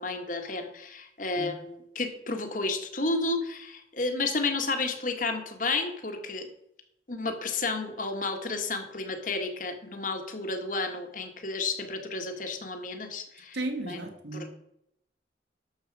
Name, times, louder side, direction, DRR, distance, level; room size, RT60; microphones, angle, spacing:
voice 1, 0.0-6.5 7.1-14.0 14.3-14.5, left 3 dB, 45° left, 5 dB, 1.6 m, -32 dB
voice 2, 13.5-14.5, right 2 dB, 75° right, 5 dB, 1.8 m, -34 dB
12.0 x 7.3 x 4.8 m, 0.76 s
head